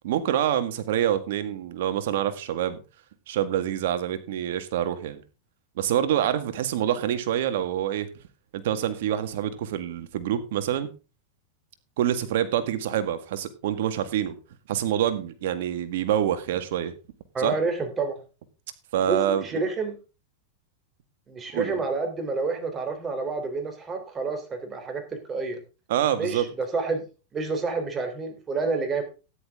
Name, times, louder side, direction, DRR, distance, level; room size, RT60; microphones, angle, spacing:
voice 1, 0.0-2.8 3.3-5.2 5.8-8.1 8.5-10.9 12.0-14.4 14.7-16.9 17.4-17.6 18.9-19.4 21.5-21.8 25.9-26.5, right 10 dB, 70° right, 1.9 m, -26 dB
voice 2, 17.3-18.1 19.1-20.0 21.3-25.6 26.2-27.0 27.3-29.0, right 4 dB, 20° right, 3.6 m, -29 dB
13.5 x 10.5 x 3.7 m
supercardioid pair, 130°, 0 cm